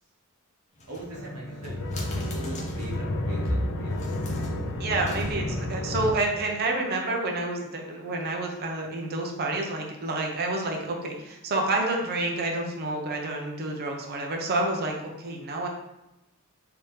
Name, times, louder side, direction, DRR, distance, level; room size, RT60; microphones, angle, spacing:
sound 1, 0.7-3.1 3.8-5.7, equal, 30° left, 0.7 m, -43 dB
voice 1, 0.9-1.8 2.1-4.3 5.3-5.9, equal, 85° right, -2 dB, 0.9 m, -37 dB
sound 2, 1.1-6.1, left 1 dB, 65° left, 0.4 m, -31 dB
voice 2, 4.8-15.7, right 2 dB, 45° right, 1 dB, 0.6 m, -29 dB
3.5 x 2.8 x 3.1 m, 0.94 s
head